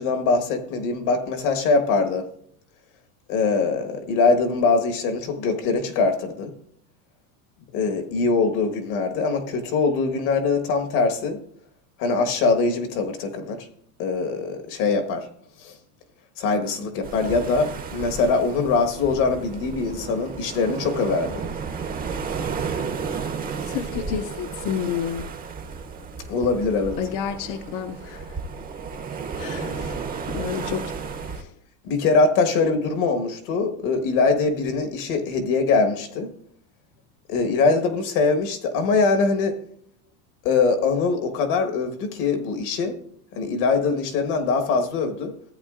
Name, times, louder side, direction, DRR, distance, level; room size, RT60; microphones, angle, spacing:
voice 1, 0.0-2.3 3.3-6.5 7.7-11.4 12.0-13.7 14.0-15.3 15.6-15.7 16.4-21.4 26.3-27.0 31.8-36.3 37.3-39.6 40.4-43.0 43.3-45.3, left 4 dB, 70° left, 1.4 m, -22 dB
sound 1, 17.0-31.4, right 5 dB, 20° right, 0.6 m, -33 dB
voice 2, 23.6-25.3 27.0-28.4 29.4-30.0 30.3-30.9 31.2-31.5, left 8 dB, 45° left, 0.5 m, -30 dB
14.5 x 8.3 x 2.4 m
supercardioid pair, 135°, 46 cm